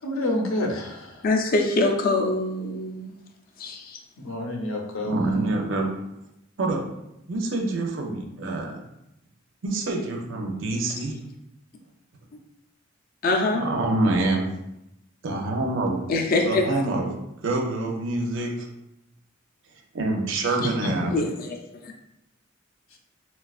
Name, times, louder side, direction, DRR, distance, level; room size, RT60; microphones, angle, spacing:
voice 1, 0.0-1.3 4.2-5.2 20.5-21.1, left 1 dB, 85° left, 1 dB, 0.6 m, -28 dB
voice 2, 1.2-3.1 3.6-4.0 13.2-13.7 16.1-16.8 21.1-21.6 21.8-21.9, left 2 dB, 45° left, 2 dB, 0.4 m, -24 dB
voice 3, 5.0-5.9 6.6-6.8 7.3-8.8 9.6-11.1 13.5-14.5 15.2-16.0 16.4-17.2 17.4-18.7 19.9-21.1, right 2 dB, 65° right, 1 dB, 0.5 m, -26 dB
4.1 x 2.2 x 2.3 m, 0.85 s
head